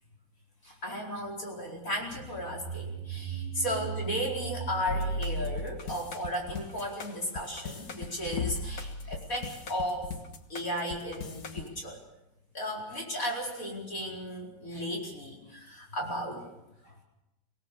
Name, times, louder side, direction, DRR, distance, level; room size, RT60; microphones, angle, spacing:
voice 1, 0.6-10.1 10.5-12.0 12.5-16.4 16.8-17.0, equal, 25° left, -1 dB, 4.7 m, -35 dB
sound 1, 2.1-6.7, right 7 dB, 80° left, 5.7 m, -39 dB
sound 2, 4.9-11.7, left 2 dB, 65° left, 0.9 m, -36 dB
25.0 x 18.0 x 6.8 m, 0.91 s
omnidirectional pair, 3.8 m